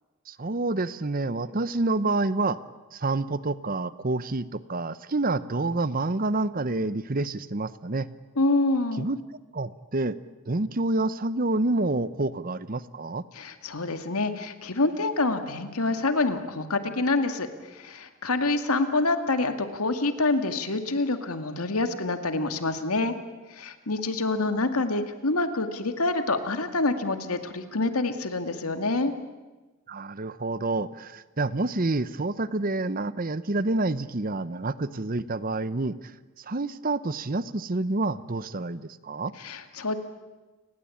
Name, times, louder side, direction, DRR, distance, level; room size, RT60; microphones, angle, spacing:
voice 1, 0.3-2.6 2.9-8.1 9.0-9.2 9.5-10.1 10.5-13.2 29.9-35.9 36.4-39.3, right 2 dB, 40° right, 16 dB, 0.8 m, -28 dB
voice 2, 8.4-9.1 13.3-23.1 23.5-29.1 39.4-40.0, left 2 dB, 85° left, 8 dB, 2.2 m, -27 dB
30.0 x 19.5 x 8.6 m, 1.2 s
head